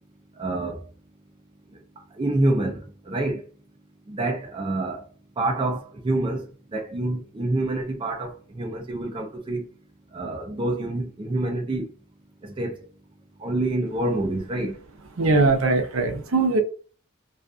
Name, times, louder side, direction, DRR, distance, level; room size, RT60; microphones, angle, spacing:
voice 1, 0.4-0.8 2.2-3.4 4.1-5.0 5.4-9.7 10.1-11.9 12.4-12.8 13.4-14.7, right 2 dB, 25° right, 0.4 m, -27 dB
voice 2, 15.2-16.6, right 3 dB, 70° right, 0.7 m, -20 dB
2.4 x 2.4 x 2.4 m
head